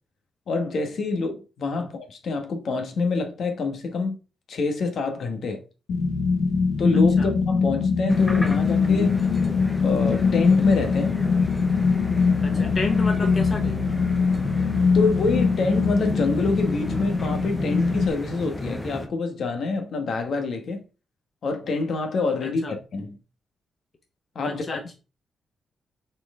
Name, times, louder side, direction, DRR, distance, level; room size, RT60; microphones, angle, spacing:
voice 1, 0.5-4.2 4.5-5.6 6.8-9.3 9.8-11.2 14.9-20.8 21.4-23.2 24.3-25.0, left 3 dB, 60° left, 1.3 m, -26 dB
sound 1, 5.9-18.1, left 5 dB, 85° left, 1.1 m, -22 dB
sound 2, 8.1-19.1, left 1 dB, 5° left, 0.8 m, -34 dB
voice 2, 12.4-13.8 22.4-22.7 24.4-25.0, left 3 dB, 35° left, 1.0 m, -31 dB
5.9 x 4.5 x 3.6 m
wide cardioid pair, 140°, 0 cm